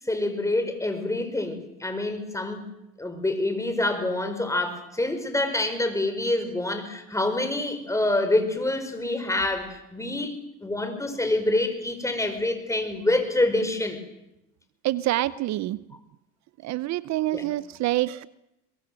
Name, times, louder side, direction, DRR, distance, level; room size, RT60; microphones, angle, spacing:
voice 1, 0.1-2.7 3.0-14.0 17.3-17.5, left 2 dB, 10° left, 7 dB, 5.2 m, -26 dB
voice 2, 14.8-15.8 16.6-18.3, right 16 dB, 60° right, 18 dB, 0.8 m, -26 dB
23.0 x 22.0 x 7.8 m, 0.88 s
supercardioid pair, 85°, 30 cm